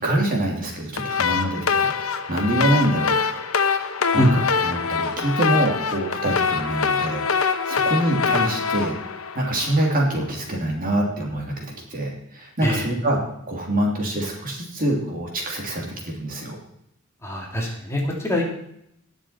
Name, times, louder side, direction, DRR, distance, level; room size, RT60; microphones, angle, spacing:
voice 1, 0.0-3.2 3.7-3.9 4.1-8.9 9.3-11.6 11.9-13.2 13.5-16.6, right 1 dB, 45° right, -1 dB, 3.1 m, -25 dB
sound 1, 1.0-10.1, left 5 dB, 90° left, 1.0 m, -24 dB
voice 2, 17.2-18.5, equal, 15° left, -2 dB, 2.9 m, -23 dB
20.0 x 7.1 x 4.4 m, 0.75 s
head